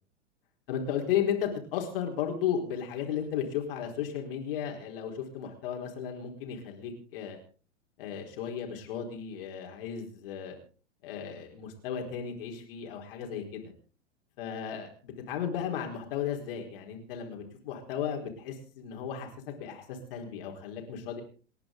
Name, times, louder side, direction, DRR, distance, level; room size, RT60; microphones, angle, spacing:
voice 1, 0.7-7.4 8.0-10.5 11.0-13.7 14.4-21.2, left 8 dB, 50° left, 2 dB, 4.5 m, -34 dB
29.5 x 10.5 x 3.9 m, 0.40 s
figure-of-eight pair, 95°, 35 cm